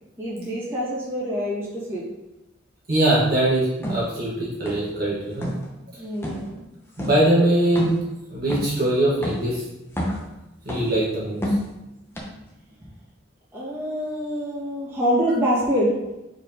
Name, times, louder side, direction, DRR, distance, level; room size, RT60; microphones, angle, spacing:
voice 1, 0.2-2.0 5.9-6.6 12.4-12.5 13.5-16.0, equal, 10° right, -9 dB, 2.2 m, -25 dB
voice 2, 2.9-5.5 7.0-8.0 8.3-9.6 10.6-11.4, right 1 dB, 50° right, -7 dB, 1.7 m, -21 dB
sound 1, 3.8-4.1 4.7-5.0 5.3-5.7 6.2-6.5 7.0-7.2 7.8-8.1 8.5-8.8 9.2-9.5 9.9-10.3 10.7-11.0 11.4-11.7 12.2-12.3, equal, 10° left, 0.9 m, -28 dB
4.8 x 4.6 x 5.1 m, 0.96 s
head